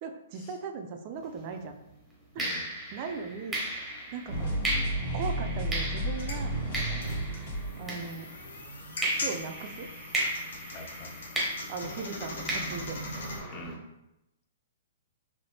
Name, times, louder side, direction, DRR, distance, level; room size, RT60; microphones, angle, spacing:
voice 1, 0.0-1.8 2.3-2.4 2.9-3.8 4.1-4.6 5.1-6.5 7.8-8.3 9.2-9.9 11.7-13.0, right 5 dB, 35° right, 5 dB, 0.3 m, -38 dB
sound 1, 1.2-1.5 2.4-8.6 9.0-13.7, right 1 dB, 5° right, 0.7 m, -36 dB
sound 2, 4.3-8.0, right 1 dB, 60° left, 1.4 m, -32 dB
sound 3, 6.0-13.4, left 2 dB, 75° left, 0.8 m, -40 dB
voice 2, 10.7-11.2 13.5-13.8, left 2 dB, 30° left, 3 dB, 0.5 m, -44 dB
3.3 x 2.7 x 2.7 m, 0.89 s
hypercardioid pair, 155°, 0 cm